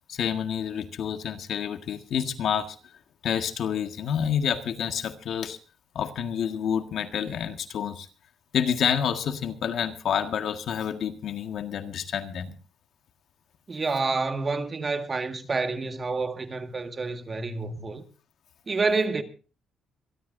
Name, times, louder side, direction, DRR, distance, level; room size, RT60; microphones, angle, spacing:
voice 1, 0.1-2.8 3.2-5.6 6.0-8.1 8.5-12.6, left 8 dB, 70° left, 1.7 m, -28 dB
voice 2, 13.7-18.0 18.7-19.2, right 3 dB, 35° right, 1.9 m, -28 dB
26.0 x 13.0 x 2.7 m
cardioid pair, 90°, 0 cm